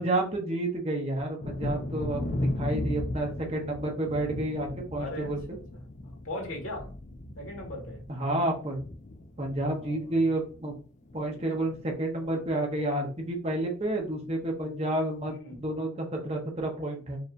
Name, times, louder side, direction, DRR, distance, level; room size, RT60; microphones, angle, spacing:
voice 1, 0.0-5.4 8.1-8.8 9.4-10.7 11.1-15.3 15.6-17.2, right 1 dB, 30° right, 1 dB, 1.1 m, -30 dB
Thunder, 1.4-10.8 11.1-11.8 12.2-12.3 12.7-12.9, left 1 dB, 40° left, 0.4 m, -36 dB
voice 2, 5.0-5.6 6.0-6.9 7.4-8.0 9.7-10.2 15.3-15.6, left 1 dB, 90° left, -1 dB, 1.8 m, -39 dB
4.8 x 3.1 x 2.6 m, 0.39 s
head